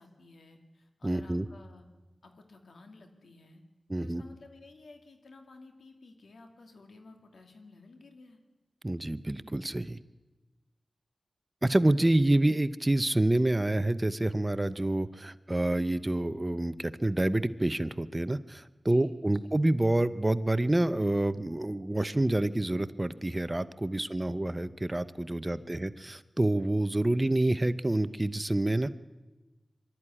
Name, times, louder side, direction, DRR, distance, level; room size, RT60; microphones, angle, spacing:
voice 1, 0.0-1.9 2.2-3.6 4.0-8.4 18.9-19.1 19.4-19.6 24.0-24.3 25.4-25.7, left 3 dB, 85° left, 4 dB, 2.6 m, -54 dB
voice 2, 1.0-1.5 3.9-4.2 8.8-10.0 11.6-28.9, right 1 dB, 20° right, 14 dB, 0.8 m, -27 dB
23.0 x 13.0 x 9.9 m, 1.2 s
wide cardioid pair, 65°, 0 cm